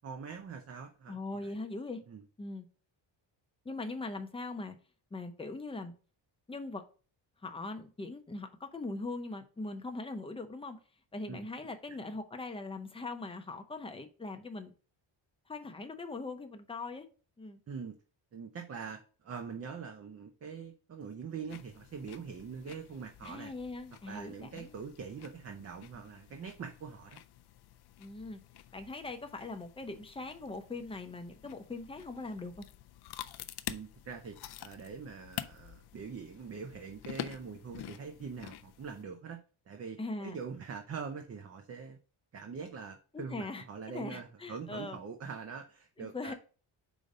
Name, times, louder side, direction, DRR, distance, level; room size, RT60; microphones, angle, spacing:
voice 1, 0.0-1.6 2.1-2.2 11.3-11.5 11.9-12.0 17.7-18.0 18.3-23.5 24.1-27.2 33.7-39.4 39.7-42.0 42.3-46.3, right 6 dB, 30° right, 5 dB, 0.6 m, -43 dB
voice 2, 1.1-2.0 2.4-2.7 3.6-4.8 5.1-5.9 6.5-6.8 7.4-10.8 11.1-14.7 15.5-17.1 17.4-17.6 23.3-24.7 28.0-28.4 28.7-32.7 40.0-40.4 43.1-43.6 43.9-45.0 46.0-46.3, left 3 dB, 10° left, 6 dB, 0.6 m, -41 dB
sound 1, 21.5-39.0, left 13 dB, 55° left, 0.5 m, -48 dB
5.1 x 3.9 x 5.3 m, 0.37 s
cardioid pair, 155°, 48 cm